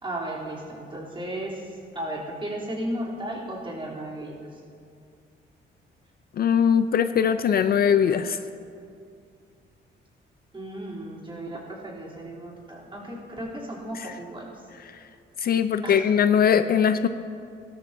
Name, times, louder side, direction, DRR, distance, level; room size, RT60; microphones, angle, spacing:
voice 1, 0.0-4.6 10.5-14.5 15.8-16.1, right 1 dB, 25° right, -5 dB, 3.2 m, -35 dB
voice 2, 6.4-8.4 15.4-17.1, left 8 dB, 50° left, 10 dB, 0.4 m, -21 dB
17.0 x 13.0 x 2.7 m, 2.4 s
cardioid pair, 90°, 20 cm